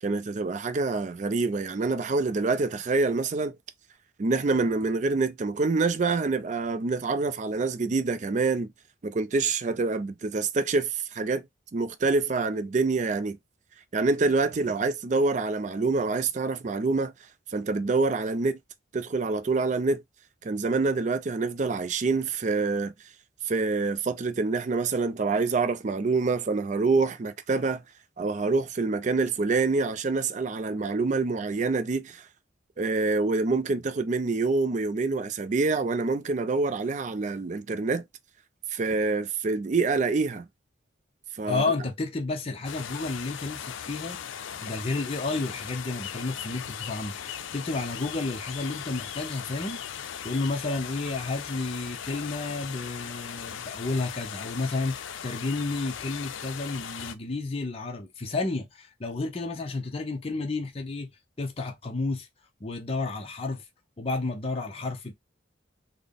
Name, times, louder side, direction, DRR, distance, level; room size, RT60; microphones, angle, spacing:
voice 1, 0.0-3.6 4.2-8.7 9.0-11.4 11.7-13.4 13.9-17.1 17.5-18.6 18.9-20.0 20.4-22.9 23.4-27.8 28.2-32.3 32.8-38.0 38.7-40.5 41.3-41.6, right 3 dB, 40° right, 0.4 m, -26 dB
voice 2, 41.5-44.2 44.6-61.1 61.4-62.3 62.6-63.6 64.0-65.1, left 3 dB, 30° left, 0.6 m, -31 dB
sound 1, 42.6-57.1, left 8 dB, 80° left, 0.4 m, -38 dB
3.9 x 2.1 x 3.4 m
head